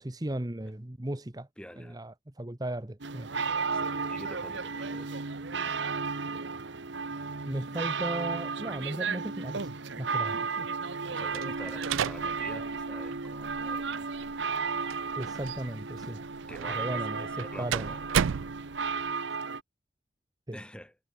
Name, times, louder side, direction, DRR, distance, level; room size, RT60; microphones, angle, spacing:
voice 1, 0.0-1.5 1.8-3.3 7.4-9.7 10.0-10.4 15.2-16.2 16.7-17.9 20.5-20.6, right 1 dB, 20° right, 0.9 m, -36 dB
voice 2, 1.6-2.0 3.7-5.2 11.1-14.1 16.5-18.1 20.5-21.0, equal, 5° left, 2.7 m, -47 dB
sound 1, 3.0-19.6, right 4 dB, 65° right, 1.1 m, -34 dB
sound 2, 11.3-19.1, right 8 dB, 80° right, 0.4 m, -35 dB
head